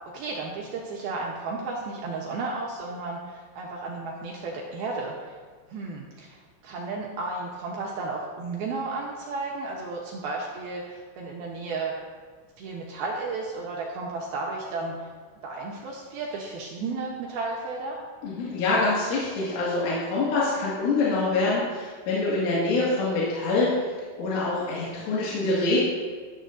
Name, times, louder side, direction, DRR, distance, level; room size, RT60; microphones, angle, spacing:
voice 1, 0.1-5.4 5.7-11.9 12.6-15.1 15.4-18.0, right 3 dB, 75° right, -2 dB, 2.3 m, -33 dB
voice 2, 18.2-23.7 24.2-25.9, left 3 dB, 80° left, -8 dB, 4.6 m, -25 dB
13.0 x 12.5 x 2.7 m, 1.5 s
omnidirectional pair, 5.6 m